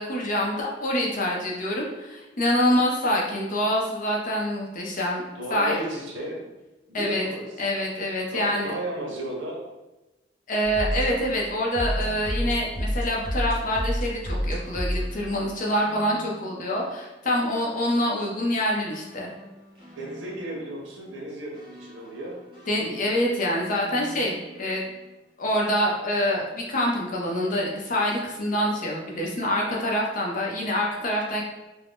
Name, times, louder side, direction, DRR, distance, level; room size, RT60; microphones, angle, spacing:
voice 1, 0.0-5.2 5.5-5.8 6.9-7.2 7.6-8.7 10.5-19.3 22.7-24.9 25.4-31.4, equal, 45° left, -2 dB, 0.6 m, -26 dB
voice 2, 5.3-6.4 6.9-7.7 8.2-9.7 19.9-22.4, right 1 dB, 85° right, -1 dB, 0.7 m, -34 dB
sound 1, 10.6-16.6 17.5-20.7 21.5-24.6 25.5-25.7, equal, 30° right, 1.1 m, -33 dB
2.5 x 2.1 x 3.4 m, 1.0 s
head